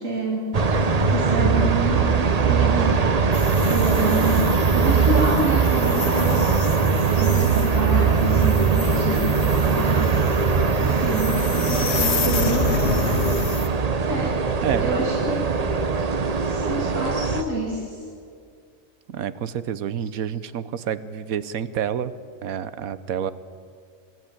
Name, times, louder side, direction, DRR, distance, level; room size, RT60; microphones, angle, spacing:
voice 1, 0.0-3.1 3.7-6.5 7.2-10.2 10.8-12.7 14.1-14.4 14.8-15.4 15.9-18.1, right 2 dB, 65° right, -3 dB, 3.3 m, -28 dB
sound 1, 0.5-17.4, right 5 dB, 35° right, 0.8 m, -21 dB
sound 2, 3.3-13.7, left 5 dB, 55° left, 1.4 m, -31 dB
voice 2, 14.6-15.0 19.1-22.1 22.4-23.3, right 9 dB, 85° right, 15 dB, 1.3 m, -28 dB
26.0 x 12.5 x 8.9 m, 2.3 s
omnidirectional pair, 1.4 m